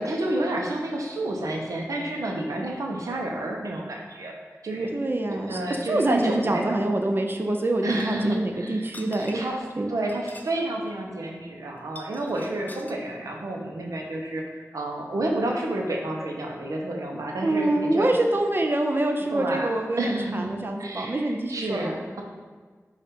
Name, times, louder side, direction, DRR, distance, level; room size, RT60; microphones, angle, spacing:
voice 1, 0.0-4.3 4.6-4.9 5.3-6.8 7.8-9.6 9.9-18.1 19.3-19.7 20.0-20.5 20.8-22.2, right 1 dB, 90° right, 0 dB, 0.6 m, -30 dB
voice 2, 4.9-5.6 5.9-9.4 9.8-9.9 17.4-21.9, right 1 dB, 40° right, 3 dB, 0.4 m, -25 dB
sound 1, 8.0-8.1 8.8-9.6 10.0-10.6 10.9-11.0 11.8-13.0, left 1 dB, 30° left, 0.4 m, -46 dB
5.2 x 2.4 x 4.2 m, 1.5 s
cardioid pair, 40°, 6 cm